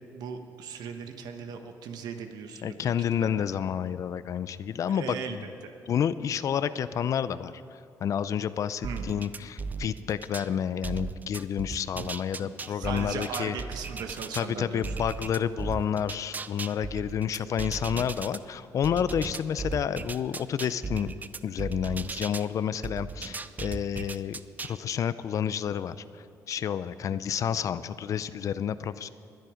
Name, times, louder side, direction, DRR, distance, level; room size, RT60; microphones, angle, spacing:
voice 1, 0.1-2.9 3.2-3.5 4.8-5.7 8.8-9.1 12.4-14.8 27.1-27.4, right 6 dB, 75° right, 6 dB, 1.3 m, -38 dB
voice 2, 2.6-5.4 5.9-7.5 8.0-13.5 14.3-21.1 21.4-24.4 24.7-25.9 26.5-29.1, left 8 dB, 55° left, 15 dB, 0.5 m, -30 dB
sound 1, 8.8-10.5 10.8-14.5 14.8-18.4 18.8-22.5 22.8-24.8, right 4 dB, 25° right, 0.5 m, -36 dB
20.0 x 10.5 x 5.1 m, 2.6 s
cardioid pair, 110°, 7 cm